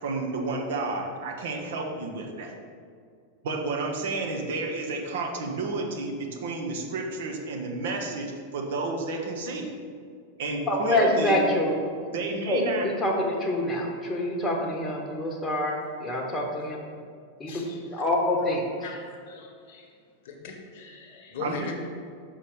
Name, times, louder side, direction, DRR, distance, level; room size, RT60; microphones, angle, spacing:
voice 1, 0.0-2.5 3.4-9.7 10.4-11.4 12.1-12.8 21.4-21.7, right 3 dB, 55° right, 1 dB, 1.0 m, -31 dB
voice 2, 10.7-11.7 12.0-12.1 12.5-16.8 17.4-18.6, left 1 dB, 15° left, -1 dB, 1.1 m, -26 dB
voice 3, 17.5-18.1 18.8-19.9 20.2-21.7, left 4 dB, 50° left, 1 dB, 1.2 m, -40 dB
5.8 x 5.4 x 4.9 m, 2.2 s
figure-of-eight pair, 90°, 0 cm